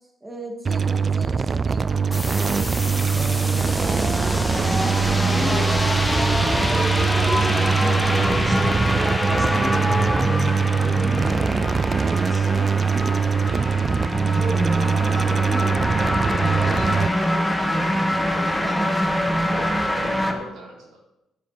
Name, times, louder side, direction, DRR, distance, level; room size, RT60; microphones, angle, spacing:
voice 1, 0.2-8.9 9.3-10.6 10.8-11.8 12.1-15.9 16.4-19.0, right 1 dB, 15° right, 1 dB, 2.4 m, -36 dB
sound 1, 0.6-17.1, right 6 dB, 40° right, 0.3 m, -22 dB
sound 2, 2.1-20.3, equal, ahead, 1.4 m, -24 dB
voice 2, 7.4-7.8 13.4-13.7 16.2-17.5 19.5-21.0, right 1 dB, 75° right, -3 dB, 3.9 m, -38 dB
11.5 x 7.2 x 4.5 m, 0.90 s
cardioid pair, 90°, 0 cm